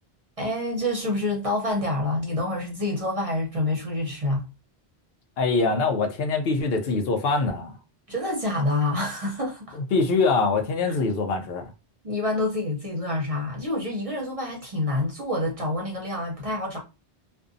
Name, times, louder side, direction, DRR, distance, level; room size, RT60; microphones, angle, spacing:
voice 1, 0.4-4.5 8.1-9.8 10.9-11.0 12.0-16.8, left 1 dB, 40° right, 0.6 m, -27 dB
voice 2, 5.4-7.8 9.7-11.7, left 3 dB, 75° left, 0.8 m, -24 dB
2.5 x 2.2 x 2.4 m
omnidirectional pair, 1.0 m